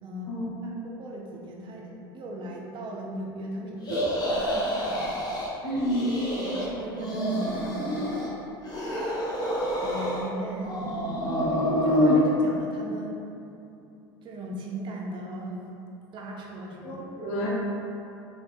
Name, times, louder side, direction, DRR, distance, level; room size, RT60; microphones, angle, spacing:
voice 1, 0.0-0.4 0.6-5.1 5.7-5.8 6.3-8.1 9.8-10.8 11.8-13.2 14.2-15.6 16.1-17.0, right 1 dB, 40° right, -1 dB, 0.5 m, -37 dB
sound 1, 3.8-5.5 5.8-6.7 6.9-8.3 8.7-10.3 10.6-12.2, equal, 30° left, 0.7 m, -27 dB
voice 2, 5.6-6.1 16.8-17.5, equal, 60° left, -6 dB, 0.9 m, -29 dB
3.3 x 2.3 x 2.6 m, 2.7 s
hypercardioid pair, 75°, 12 cm